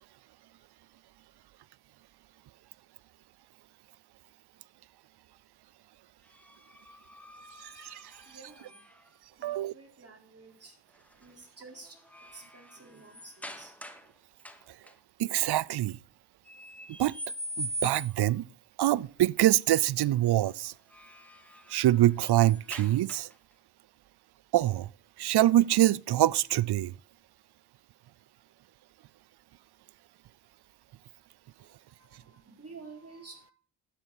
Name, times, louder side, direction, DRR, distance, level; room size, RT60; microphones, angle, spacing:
sound 1, 6.3-9.2 10.9-11.3 11.7-14.1 14.4-14.9 16.4-18.3 20.6-23.5, equal, 5° left, 1.5 m, -43 dB
voice 1, 7.6-8.1 9.4-9.7 15.2-16.0 17.0-17.2 17.6-18.5 18.8-20.7 21.7-23.3 24.5-24.9 25.2-26.9, right 14 dB, 55° right, 0.5 m, -25 dB
voice 2, 8.2-8.8 9.3-10.8 11.1-13.8 31.6-33.5, right 4 dB, 30° right, 4.3 m, -51 dB
11.5 x 9.2 x 4.2 m
supercardioid pair, 55°, 49 cm